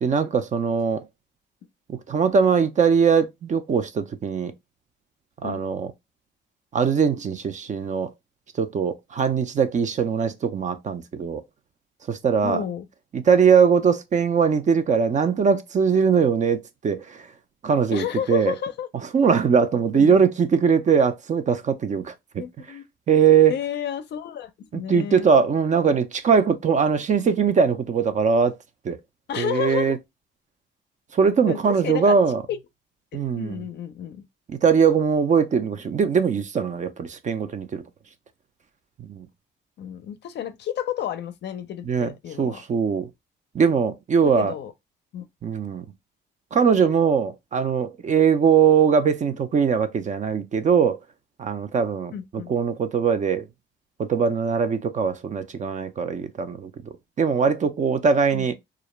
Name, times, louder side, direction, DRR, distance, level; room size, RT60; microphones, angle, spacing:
voice 1, 0.0-1.0 1.9-4.5 5.4-5.9 6.7-8.1 8.6-11.4 12.1-12.6 13.1-17.3 17.6-18.5 19.1-22.4 23.1-23.5 24.7-28.5 28.8-29.0 29.4-30.0 31.1-32.4 33.1-33.6 34.5-37.8 39.0-39.3 41.9-43.1 43.5-44.5 45.4-45.9 46.5-51.0 51.4-53.4 54.0-58.5, right 6 dB, 40° right, 0.4 m, -21 dB
voice 2, 12.4-12.9 17.9-18.9 19.9-20.3 22.4-22.8 23.5-25.3 27.2-27.3 29.3-30.0 31.5-32.2 32.5-32.6 33.4-34.2 39.8-42.6 43.7-43.8 44.2-44.7 45.1-45.3 52.1-52.5 58.3-58.5, left 9 dB, 60° left, 0.4 m, -31 dB
2.4 x 2.1 x 3.0 m
cardioid pair, 90°, 20 cm